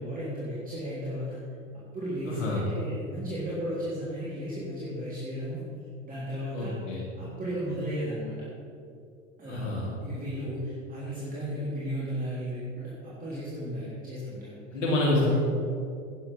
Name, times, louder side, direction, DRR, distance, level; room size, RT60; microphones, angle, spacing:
voice 1, 0.0-1.4 1.9-5.6 6.0-6.7 7.1-8.4 9.4-14.6 15.3-15.4, equal, 20° right, -8 dB, 3.5 m, -34 dB
voice 2, 2.3-2.6 6.5-7.0 9.5-9.9 14.7-15.4, left 2 dB, 70° left, -4 dB, 2.5 m, -27 dB
10.5 x 9.5 x 5.7 m, 2.5 s
hypercardioid pair, 85°, 38 cm